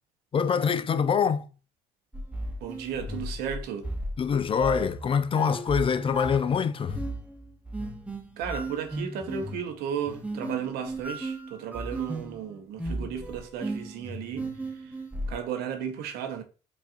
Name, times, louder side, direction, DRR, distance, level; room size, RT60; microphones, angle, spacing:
voice 1, 0.3-1.5 4.2-7.0, left 6 dB, 35° left, 0.4 m, -25 dB
sound 1, 2.1-15.4, right 1 dB, 10° right, 0.8 m, -36 dB
voice 2, 2.6-3.9 8.4-15.0 15.3-16.4, right 8 dB, 75° right, 0.8 m, -34 dB
4.8 x 2.4 x 2.5 m
hypercardioid pair, 60°, 16 cm